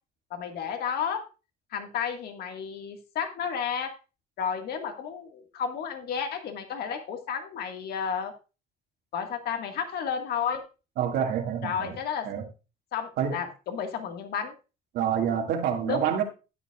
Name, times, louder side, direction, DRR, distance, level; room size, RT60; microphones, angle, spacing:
voice 1, 0.3-1.2 1.7-3.9 4.4-8.3 9.1-10.6 11.6-12.3 12.9-14.5 15.8-16.0, left 7 dB, 70° left, 1.7 m, -32 dB
voice 2, 11.0-12.0 12.2-12.4 13.2-13.4 14.9-16.2, right 8 dB, 80° right, 2.1 m, -27 dB
13.0 x 9.6 x 2.4 m
cardioid pair, 110°, 17 cm